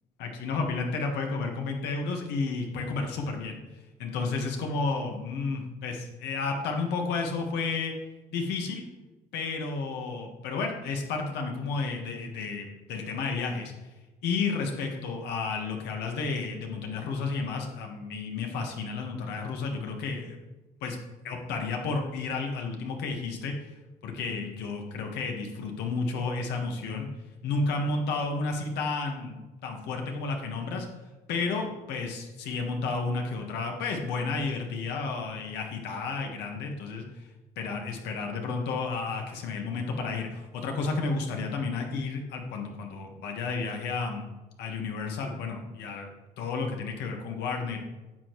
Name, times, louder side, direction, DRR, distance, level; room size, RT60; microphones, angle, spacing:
voice 1, 0.2-3.6 4.0-7.9 8.3-8.8 9.3-13.7 14.2-20.4 20.8-21.0 21.2-23.5 24.0-27.1 27.4-30.9 31.3-37.0 37.6-44.3 44.6-46.1 46.4-47.8, left 4 dB, 85° left, 2 dB, 1.5 m, -32 dB
10.0 x 6.9 x 3.1 m, 1.1 s
cardioid pair, 110°, 17 cm